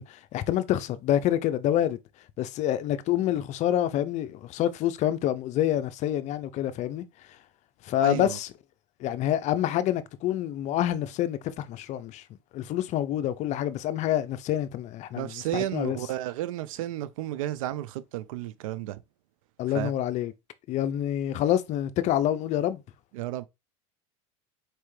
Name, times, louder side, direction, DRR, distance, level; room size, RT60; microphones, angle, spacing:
voice 1, 0.0-2.0 2.4-7.0 7.8-8.5 9.0-12.2 12.5-16.0 19.6-20.3 20.7-22.8, left 12 dB, 45° left, 0.5 m, -27 dB
voice 2, 8.0-8.4 15.2-19.0 19.7-19.9 23.1-23.5, right 13 dB, 85° right, 0.5 m, -32 dB
4.5 x 3.3 x 3.2 m
supercardioid pair, 120°, 17 cm